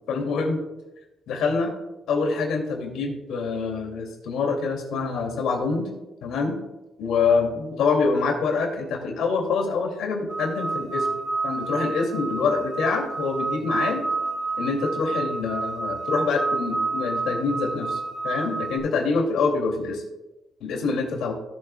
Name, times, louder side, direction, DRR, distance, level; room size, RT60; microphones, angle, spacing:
voice 1, 0.1-0.6 1.3-1.7 2.1-5.9 6.2-6.6 7.0-11.1 11.4-14.0 14.6-18.0 18.2-20.0 20.6-21.3, left 4 dB, 80° left, 1 dB, 2.4 m, -25 dB
sound 1, 10.3-18.8, right 3 dB, 25° right, 1.6 m, -29 dB
17.5 x 7.1 x 2.2 m, 1.0 s
cardioid pair, 90°, 0 cm